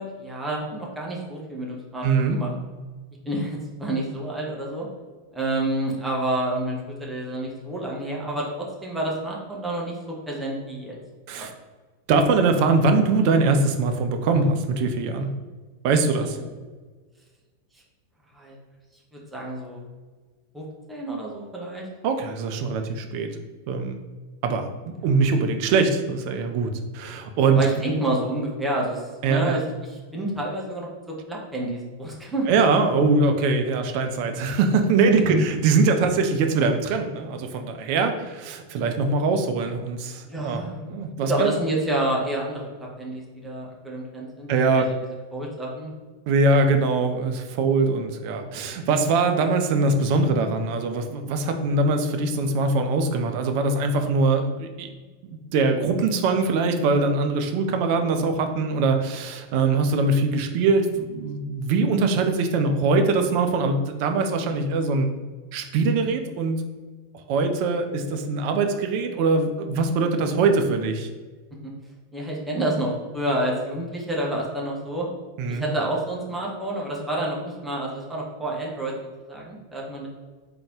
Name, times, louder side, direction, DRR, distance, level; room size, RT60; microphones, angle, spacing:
voice 1, 0.0-2.5 3.2-4.9 5.3-8.5 8.8-9.9 10.3-11.0 11.4-11.5 16.3-16.5 18.3-18.6 19.1-19.8 20.5-21.9 25.0-25.1 27.4-32.5 35.2-35.4 40.3-40.9 41.3-44.9 45.3-45.9 71.6-71.7 72.1-75.1 75.5-78.9 79.3-80.1, right 1 dB, 10° right, -3 dB, 1.0 m, -29 dB
voice 2, 2.0-2.4 11.3-11.5 12.1-15.3 15.8-16.4 22.0-23.3 23.7-24.0 24.4-27.6 29.2-29.6 32.5-41.5 44.5-44.9 46.3-54.9 55.3-65.1 65.5-66.7 67.1-71.1 75.4-75.6, right 3 dB, 45° right, 6 dB, 0.5 m, -22 dB
3.8 x 2.8 x 3.7 m, 1.4 s
figure-of-eight pair, 90°, 0 cm